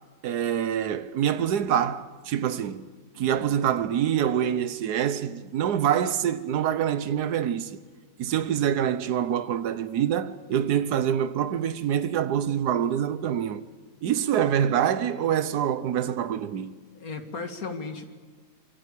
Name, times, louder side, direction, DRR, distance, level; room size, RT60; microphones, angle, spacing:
voice 1, 0.2-2.8 3.2-7.8 8.2-13.6 14.0-16.7, right 9 dB, 70° right, 1.5 m, -25 dB
voice 2, 3.1-3.5 16.9-18.0, left 4 dB, 60° left, 2.5 m, -36 dB
26.0 x 24.0 x 8.4 m
omnidirectional pair, 1.8 m